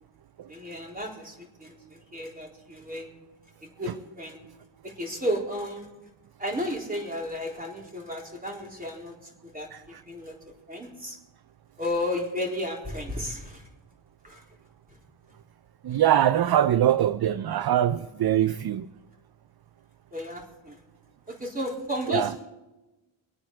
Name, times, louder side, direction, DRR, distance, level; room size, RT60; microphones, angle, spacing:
voice 1, 0.5-3.1 3.6-4.4 4.8-5.9 6.4-10.4 10.7-11.2 11.8-13.7 14.2-14.4 20.1-20.8 21.3-22.5, left 1 dB, 15° right, 3.9 m, -33 dB
voice 2, 15.8-18.9 22.1-22.3, right 11 dB, 50° right, 0.5 m, -22 dB
26.0 x 8.8 x 4.8 m
wide cardioid pair, 115°, 48 cm